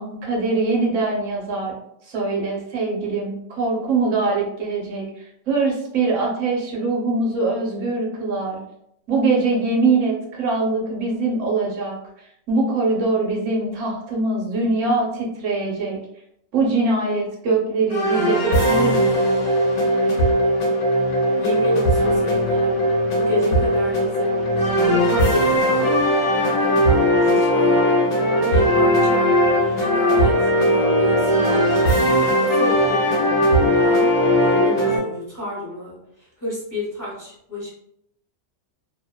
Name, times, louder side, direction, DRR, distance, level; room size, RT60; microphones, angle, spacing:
voice 1, 0.0-1.7 2.1-5.0 5.5-8.6 9.1-12.0 12.5-16.0 16.5-19.2, right 3 dB, 85° right, -1 dB, 1.0 m, -22 dB
sound 1, 17.9-35.0, equal, 80° left, 1.0 m, -18 dB
voice 2, 21.4-22.8 23.1-24.4 24.8-26.0 26.3-37.7, left 1 dB, 20° left, -8 dB, 0.7 m, -31 dB
2.7 x 2.1 x 2.2 m, 0.76 s
omnidirectional pair, 1.3 m